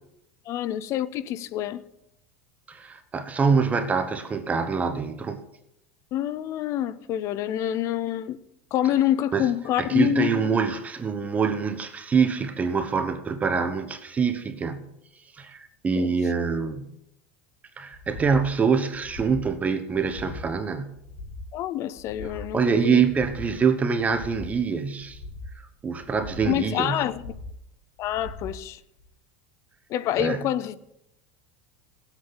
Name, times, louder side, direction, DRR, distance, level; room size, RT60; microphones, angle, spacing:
voice 1, 0.5-1.8 6.1-8.4 8.7-10.4 16.0-16.1 21.5-23.0 26.4-27.2 28.0-28.8 29.9-30.8, left 11 dB, 45° left, 0.6 m, -27 dB
voice 2, 2.7-5.4 9.3-9.5 9.8-14.9 15.3-16.9 17.8-21.0 22.2-25.2 25.8-27.1 30.2-30.5, right 5 dB, 20° right, 0.9 m, -25 dB
sound 1, 17.9-18.5 18.9-19.5 19.9-20.5 20.9-21.5 21.9-22.5 22.9-23.5 23.9-24.5 24.9-25.5 26.0-26.5 27.0-27.6 28.0-28.6 29.0-29.1, left 2 dB, 75° left, 2.1 m, -41 dB
18.5 x 8.1 x 4.1 m
supercardioid pair, 120°, 7 cm